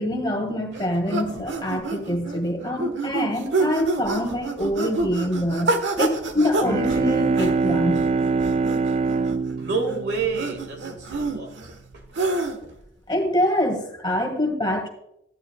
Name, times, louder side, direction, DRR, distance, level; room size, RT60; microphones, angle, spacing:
voice 1, 0.0-8.0 13.1-14.9, left 1 dB, 25° left, 2 dB, 1.8 m, -25 dB
sound 1, 0.7-12.8, right 3 dB, 90° right, 1.3 m, -28 dB
Bowed string instrument, 6.4-11.2, right 4 dB, 35° right, 0.3 m, -24 dB
voice 2, 9.6-12.0, right 4 dB, 65° right, 3 dB, 1.9 m, -29 dB
14.5 x 9.9 x 2.3 m, 0.79 s
head